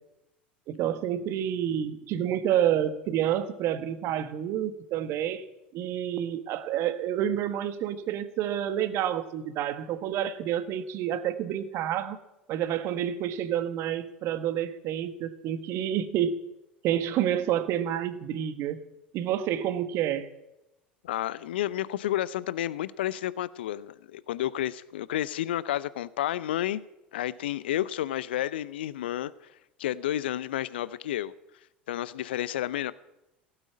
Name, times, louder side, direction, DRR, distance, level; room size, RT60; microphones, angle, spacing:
voice 1, 0.7-5.4 5.7-12.2 12.5-16.4 16.8-18.8 19.1-20.3, right 10 dB, 50° right, 1.5 m, -29 dB
voice 2, 21.0-26.8 27.1-29.3 29.8-31.3 31.9-32.9, left 12 dB, 75° left, 0.6 m, -31 dB
16.5 x 9.0 x 8.6 m
hypercardioid pair, 75°, 6 cm